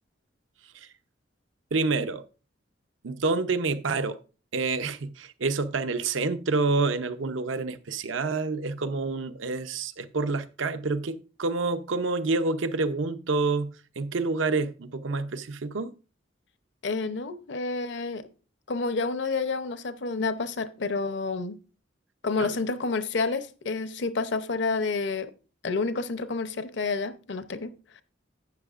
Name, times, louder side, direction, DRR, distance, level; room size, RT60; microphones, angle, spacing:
voice 1, 1.7-2.2 3.0-4.2 4.5-15.9 22.4-22.5, right 3 dB, 80° right, 0.7 m, -28 dB
voice 2, 16.8-18.3 18.7-21.6 22.2-25.3 25.6-28.0, left 4 dB, 65° left, 0.7 m, -29 dB
11.5 x 8.4 x 2.5 m
head